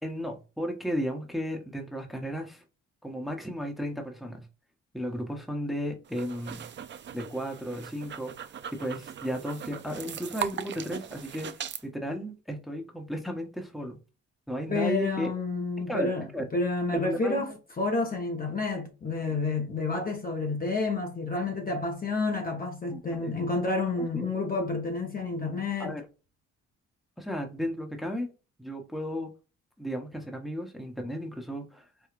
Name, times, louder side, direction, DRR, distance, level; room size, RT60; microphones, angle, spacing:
voice 1, 0.0-2.6 3.0-4.4 4.9-6.6 7.1-11.5 11.8-14.0 14.5-15.3 15.9-16.4 16.9-17.4 22.9-23.3 23.9-24.5 25.8-26.0 27.2-28.3 28.6-29.3 29.8-31.9, equal, ahead, 0.9 m, -34 dB
sound 1, 6.1-11.8, right 9 dB, 40° right, 0.4 m, -39 dB
voice 2, 14.7-16.3 16.5-17.5 17.8-25.9, left 3 dB, 30° left, 0.9 m, -29 dB
4.6 x 2.3 x 2.4 m
cardioid pair, 90°, 30 cm